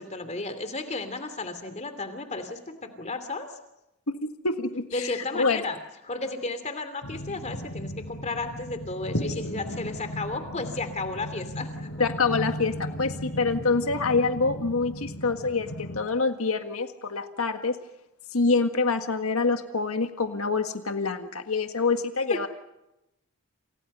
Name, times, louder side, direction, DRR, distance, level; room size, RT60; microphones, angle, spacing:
voice 1, 0.0-3.6 4.9-5.8 6.0-12.1 22.3-22.5, left 3 dB, 30° left, 9 dB, 2.8 m, -33 dB
voice 2, 4.1-5.6 12.0-17.8 18.3-22.5, left 4 dB, 80° left, 6 dB, 1.7 m, -26 dB
sound 1, 7.0-16.0, equal, 65° left, 4.8 m, -36 dB
29.5 x 29.0 x 5.6 m, 0.90 s
head